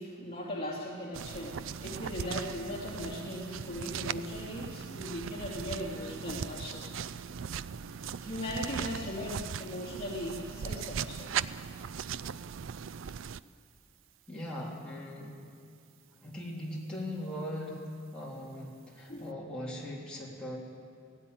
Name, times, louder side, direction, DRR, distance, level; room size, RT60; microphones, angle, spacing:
voice 1, 0.0-6.9 8.0-11.3 19.1-19.3, left 1 dB, 30° left, -4 dB, 2.9 m, -39 dB
sound 1, 1.1-13.4, right 7 dB, 65° right, 0.4 m, -39 dB
voice 2, 14.3-15.4 16.2-17.8 18.1-20.6, left 1 dB, 5° left, -6 dB, 3.5 m, -40 dB
16.5 x 16.5 x 9.6 m, 2.2 s
head